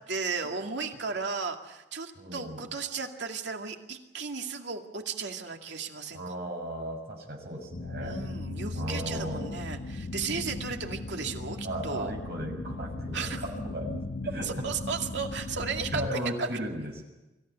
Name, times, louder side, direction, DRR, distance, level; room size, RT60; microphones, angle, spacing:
voice 1, 0.1-6.4 8.0-12.1 13.1-13.4 14.4-16.0 16.4-16.5, right 5 dB, 80° right, 3 dB, 2.3 m, -35 dB
voice 2, 2.2-2.6 6.1-8.2 8.7-9.5 10.3-10.4 11.6-13.3 13.6-14.6 15.9-17.0, equal, 60° right, -1 dB, 6.7 m, -36 dB
sound 1, 7.7-16.1, left 2 dB, 70° left, 1.4 m, -37 dB
25.0 x 15.5 x 10.0 m, 1.0 s
head